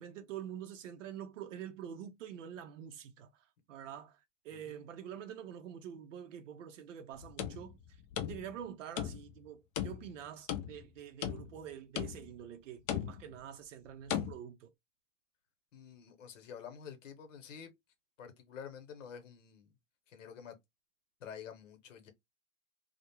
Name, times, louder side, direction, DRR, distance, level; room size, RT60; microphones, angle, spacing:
voice 1, 0.0-3.3 3.7-14.7, right 9 dB, 80° right, 0.6 m, -46 dB
voice 2, 4.5-4.8 15.7-17.7 18.2-19.7 20.1-20.5 21.2-22.1, left 7 dB, 80° left, 0.9 m, -49 dB
sound 1, 7.1-8.7 9.0-9.4 9.8-10.9 11.2-11.7 12.0-12.4 12.9-13.4 14.1-14.3, left 10 dB, 35° left, 0.4 m, -38 dB
2.4 x 2.1 x 2.9 m
hypercardioid pair, 125°, 37 cm